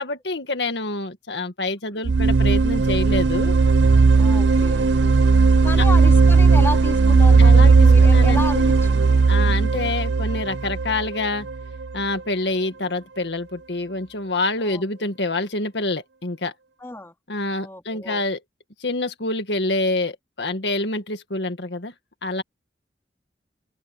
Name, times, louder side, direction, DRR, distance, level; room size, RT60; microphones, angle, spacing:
voice 1, 0.0-3.5 7.4-8.6 9.3-11.5 11.9-16.5 17.3-18.4 18.8-21.9 22.2-22.4, left 2 dB, 80° left, 1.8 m, -27 dB
sound 1, 2.0-11.8, right 4 dB, 85° right, 0.5 m, -16 dB
voice 2, 4.2-4.9 5.6-9.7 14.6-14.8 16.8-17.1 17.6-18.2, left 1 dB, 15° left, 2.7 m, -32 dB
head